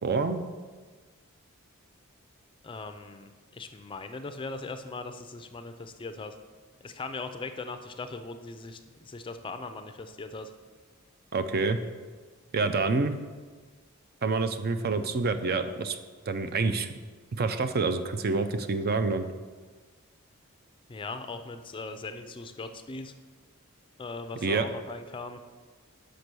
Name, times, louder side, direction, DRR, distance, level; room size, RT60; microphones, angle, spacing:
voice 1, 0.0-0.5 11.3-11.8 12.5-13.2 14.2-16.0 16.3-16.9 17.4-19.3 24.4-24.7, right 4 dB, 45° right, 9 dB, 0.5 m, -27 dB
voice 2, 2.6-6.4 6.8-10.5 20.9-23.1 24.0-25.4, left 3 dB, 25° left, 8 dB, 0.4 m, -39 dB
6.7 x 5.1 x 6.1 m, 1.4 s
head